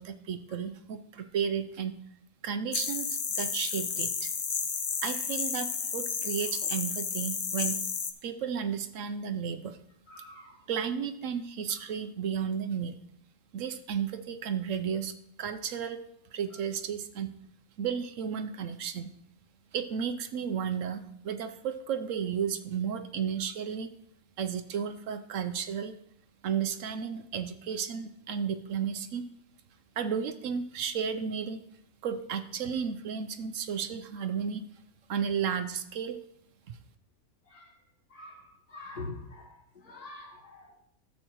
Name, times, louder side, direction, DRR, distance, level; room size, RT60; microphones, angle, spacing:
voice 1, 0.0-1.9 2.4-4.3 5.0-7.8 8.2-9.8 10.7-13.0 13.5-16.0 16.3-17.3 17.8-19.1 19.7-23.9 24.4-25.9 26.4-29.2 30.0-31.6 32.0-34.6 35.1-36.2 36.7-36.8, right 7 dB, 65° right, 10 dB, 0.9 m, -33 dB
sound 1, 2.7-8.1, left 5 dB, 70° left, 0.3 m, -32 dB
voice 2, 10.1-10.5 37.5-37.6 38.1-38.4 38.7-39.5 39.8-40.8, left 2 dB, 85° left, -1 dB, 2.5 m, -44 dB
12.5 x 7.6 x 3.0 m, 0.76 s
omnidirectional pair, 1.6 m